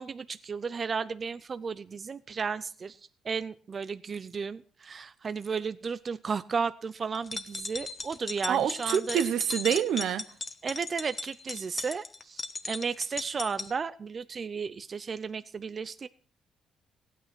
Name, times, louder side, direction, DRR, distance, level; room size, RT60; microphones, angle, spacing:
voice 1, 0.0-9.2 10.6-16.1, right 5 dB, 40° right, 0.6 m, -34 dB
sound 1, 7.1-13.7, left 4 dB, 35° left, 1.2 m, -37 dB
voice 2, 8.5-10.2, right 9 dB, 75° right, 0.8 m, -27 dB
16.0 x 9.2 x 6.0 m
cardioid pair, 90°, 0 cm